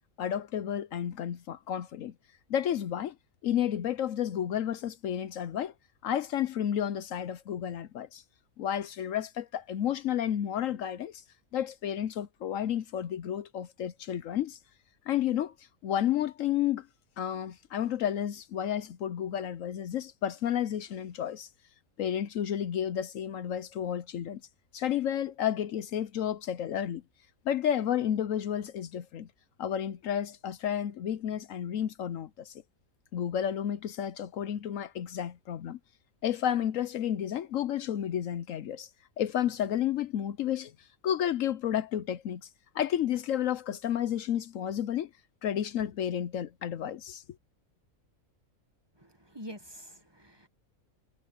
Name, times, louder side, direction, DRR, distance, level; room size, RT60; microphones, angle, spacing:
voice 1, 0.2-2.1 2.5-3.2 3.4-5.7 6.0-8.2 8.6-11.2 11.5-14.6 15.1-15.5 15.8-16.9 17.2-21.5 22.0-24.4 24.7-27.0 27.4-29.3 29.6-32.6 33.1-35.8 36.2-38.9 39.2-40.7 41.0-42.5 42.7-45.1 45.4-47.2, left 10 dB, 70° left, 1.0 m, -31 dB
voice 2, 49.0-50.5, equal, 20° right, 1.6 m, -46 dB
omnidirectional pair, 1.5 m